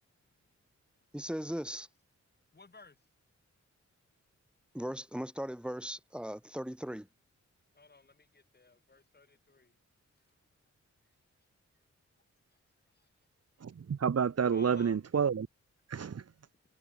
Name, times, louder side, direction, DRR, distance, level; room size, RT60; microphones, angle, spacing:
voice 1, 1.1-1.9 4.7-7.1, equal, 5° right, 2.5 m, -38 dB
voice 2, 2.5-3.0 7.7-9.8 13.0-13.1 14.5-15.0, left 3 dB, 35° left, 5.3 m, -56 dB
voice 3, 13.6-15.5 15.9-16.2, right 7 dB, 60° right, 1.5 m, -29 dB
wide cardioid pair, 120°, 29 cm